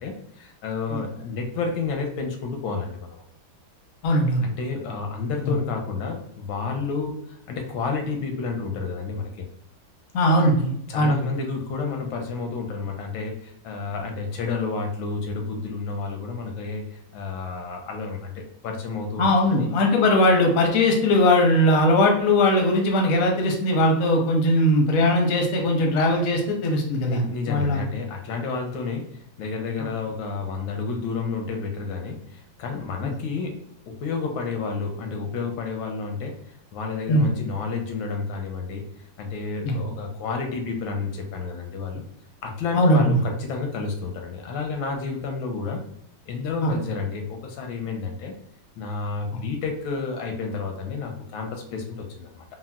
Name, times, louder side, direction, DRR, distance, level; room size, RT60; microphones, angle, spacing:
voice 1, 0.0-3.2 4.4-9.5 10.9-19.7 27.1-36.3 36.7-38.9 39.2-42.0 42.4-45.8 46.3-48.3 48.8-52.4, left 4 dB, 80° left, 3 dB, 1.4 m, -30 dB
voice 2, 4.0-4.5 10.1-11.1 19.2-27.2 27.5-27.8 29.8-29.9 33.0-33.1 37.1-37.3 39.6-39.8 42.7-43.2 46.6-46.7, left 1 dB, 65° left, 1 dB, 0.8 m, -20 dB
3.9 x 2.0 x 2.2 m, 0.74 s
omnidirectional pair, 2.2 m